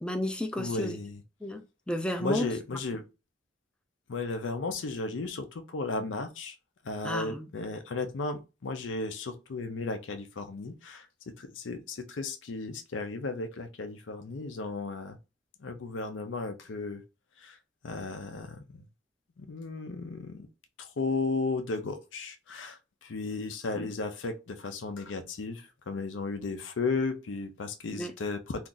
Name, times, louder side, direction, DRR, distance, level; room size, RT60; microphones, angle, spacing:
voice 1, 0.0-1.0 1.4-2.5 7.0-7.5 23.8-23.9 27.9-28.2, left 1 dB, 5° left, 0.3 m, -32 dB
voice 2, 0.6-1.2 2.2-3.0 4.1-6.6 6.8-15.2 15.6-17.0 17.4-17.6 17.8-18.8 19.4-20.5 20.8-28.7, left 3 dB, 85° left, 0.5 m, -35 dB
2.5 x 2.4 x 3.8 m
head